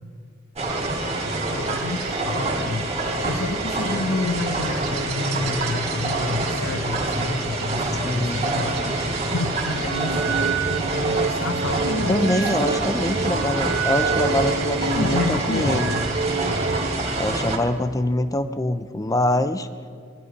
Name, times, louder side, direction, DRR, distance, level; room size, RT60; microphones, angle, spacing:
sound 1, 0.6-17.6, right 2 dB, 30° right, 1.7 m, -26 dB
voice 1, 1.5-12.5 14.8-16.0, left 3 dB, 85° left, 6 dB, 0.8 m, -30 dB
voice 2, 8.0-8.5 12.1-15.9 17.2-19.7, left 1 dB, 20° left, 12 dB, 0.5 m, -24 dB
sound 2, 9.9-16.9, right 5 dB, 60° right, 0.9 m, -27 dB
20.5 x 11.0 x 5.1 m, 2.2 s
head